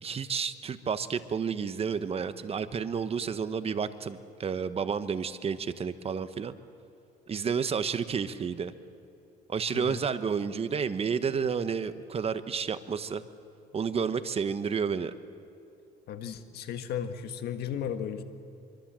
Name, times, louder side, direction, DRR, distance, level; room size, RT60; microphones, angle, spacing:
voice 1, 0.0-6.5 7.3-8.7 9.5-13.2 13.7-15.1, right 6 dB, 35° right, 11 dB, 1.1 m, -31 dB
voice 2, 16.1-18.2, left 8 dB, 70° left, 8 dB, 1.7 m, -35 dB
26.0 x 23.5 x 7.6 m, 2.6 s
cardioid pair, 110°, 17 cm